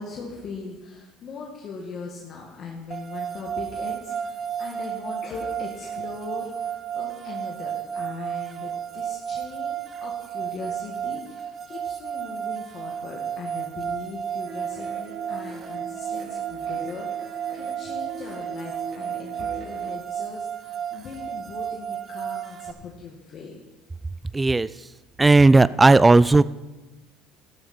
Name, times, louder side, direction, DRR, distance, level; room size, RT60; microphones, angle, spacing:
voice 1, 0.0-23.6, left 4 dB, 50° left, -1 dB, 2.0 m, -40 dB
sound 1, 2.9-22.7, right 8 dB, 35° right, 0.8 m, -32 dB
sound 2, 14.5-19.9, right 5 dB, 55° right, 1.7 m, -39 dB
voice 2, 24.3-24.7 25.2-26.4, right 3 dB, 15° right, 18 dB, 0.3 m, -15 dB
13.5 x 12.0 x 4.5 m, 1.1 s
supercardioid pair, 95°, 0 cm